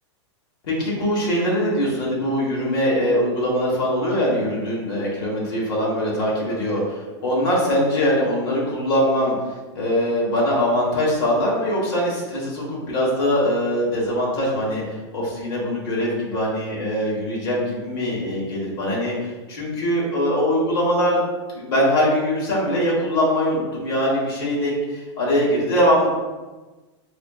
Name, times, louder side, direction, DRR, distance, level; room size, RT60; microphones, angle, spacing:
voice 1, 0.6-9.3 9.7-14.8 15.1-21.2 21.5-26.1, equal, 55° left, -4 dB, 1.2 m, -22 dB
5.7 x 2.5 x 2.3 m, 1.2 s
supercardioid pair, 170°, 15 cm